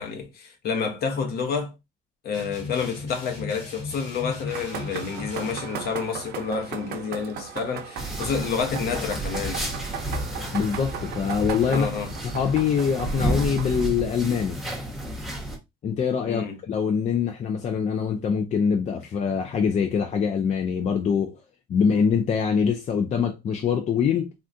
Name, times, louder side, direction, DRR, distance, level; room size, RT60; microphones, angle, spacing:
voice 1, 0.0-1.7 2.2-9.7 11.7-12.1 16.2-16.6, left 5 dB, 65° left, 1.0 m, -29 dB
sound 1, 2.3-5.6, left 3 dB, 90° left, 2.0 m, -37 dB
sound 2, 4.5-13.9, right 7 dB, 70° right, 0.7 m, -37 dB
sound 3, 8.0-15.6, right 1 dB, ahead, 1.0 m, -31 dB
voice 2, 10.5-11.9 12.3-14.6 15.8-21.4 21.7-24.3, left 6 dB, 45° left, 0.5 m, -24 dB
3.6 x 2.3 x 2.6 m
cardioid pair, 110°, 17 cm